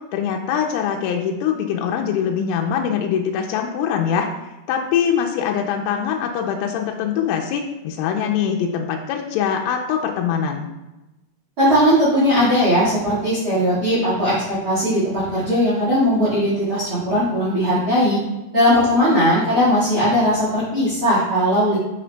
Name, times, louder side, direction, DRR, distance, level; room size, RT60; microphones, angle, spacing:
voice 1, 0.1-4.3 4.7-10.7, left 8 dB, 85° left, 2 dB, 3.1 m, -23 dB
voice 2, 11.6-14.3 14.6-18.2 18.5-21.8, equal, 60° right, -9 dB, 1.4 m, -18 dB
8.3 x 6.2 x 2.3 m, 1.0 s
omnidirectional pair, 5.6 m